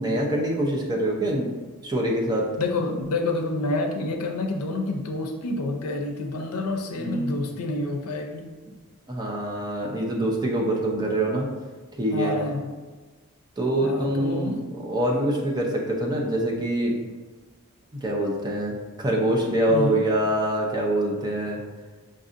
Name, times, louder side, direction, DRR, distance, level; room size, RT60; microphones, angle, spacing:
voice 1, 0.0-1.5 1.8-2.5 7.0-7.3 9.1-11.5 12.0-12.3 13.6-17.0 18.0-21.6, right 1 dB, 20° right, -2 dB, 0.6 m, -25 dB
voice 2, 2.6-8.5 12.1-12.7 13.8-14.6 19.7-20.0, left 2 dB, 80° left, 3 dB, 0.5 m, -28 dB
5.3 x 2.6 x 2.5 m, 1.3 s
head